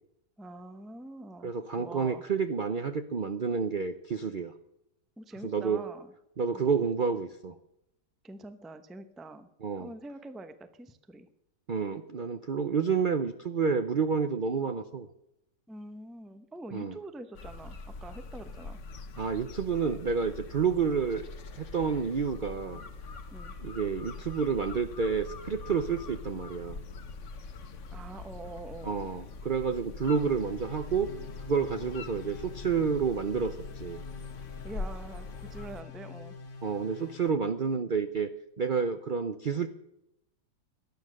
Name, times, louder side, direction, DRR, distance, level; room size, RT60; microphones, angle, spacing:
voice 1, 0.4-2.2 5.2-6.1 6.5-6.8 8.2-9.5 9.8-11.3 15.7-18.8 23.3-23.6 27.9-29.0 34.6-36.4, right 2 dB, ahead, 9 dB, 0.4 m, -45 dB
voice 2, 1.4-4.5 5.4-5.8 6.4-7.5 9.6-9.9 11.7-15.1 16.7-17.0 19.2-21.2 21.6-22.8 23.6-26.8 28.8-31.1 31.5-34.0 36.6-38.3 38.6-39.7, right 5 dB, 65° right, 10 dB, 0.5 m, -29 dB
sound 1, 17.3-35.8, left 3 dB, 50° left, 1.3 m, -43 dB
sound 2, 30.0-37.3, left 6 dB, 75° left, 2.4 m, -47 dB
18.5 x 12.0 x 6.4 m, 0.86 s
omnidirectional pair, 1.9 m